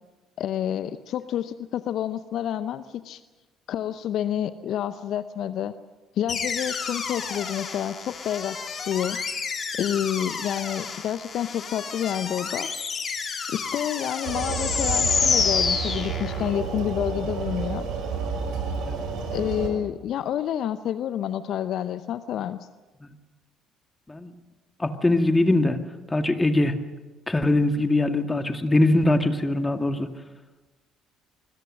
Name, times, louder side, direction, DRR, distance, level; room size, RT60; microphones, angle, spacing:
voice 1, 0.4-3.2 3.7-5.7 6.1-9.2 9.8-12.7 13.5-17.9 19.3-22.7, left 10 dB, 60° left, 14 dB, 0.7 m, -29 dB
sound 1, 6.3-16.6, left 5 dB, 45° left, 3.9 m, -29 dB
sound 2, 14.2-19.7, right 5 dB, 65° right, 5.0 m, -30 dB
voice 2, 24.8-25.8 26.1-26.7 27.3-30.1, left 2 dB, 15° left, 6 dB, 2.2 m, -22 dB
26.0 x 21.5 x 6.5 m, 1.2 s
hypercardioid pair, 50°, 0 cm